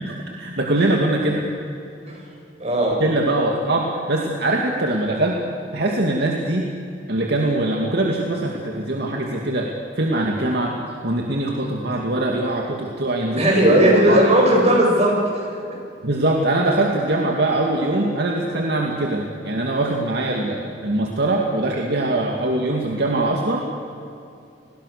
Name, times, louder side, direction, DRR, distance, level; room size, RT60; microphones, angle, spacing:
voice 1, 0.0-1.4 3.0-5.4 5.7-6.7 7.1-10.8 11.0-14.3 16.0-23.6, right 2 dB, 65° right, 0 dB, 2.3 m, -22 dB
voice 2, 2.6-3.0 13.4-15.7, right 1 dB, 40° right, -1 dB, 7.5 m, -17 dB
30.0 x 21.0 x 6.7 m, 2.6 s
head